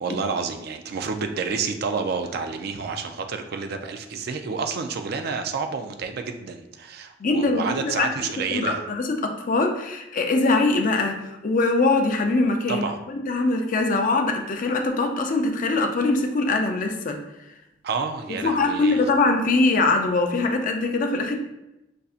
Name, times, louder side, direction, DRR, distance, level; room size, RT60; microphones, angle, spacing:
voice 1, 0.0-8.8 12.7-13.0 17.8-19.0, right 5 dB, 55° right, 6 dB, 0.4 m, -29 dB
voice 2, 7.2-8.1 8.5-17.2 18.4-21.4, left 3 dB, 45° left, 4 dB, 0.4 m, -22 dB
5.5 x 2.6 x 2.4 m, 0.93 s
head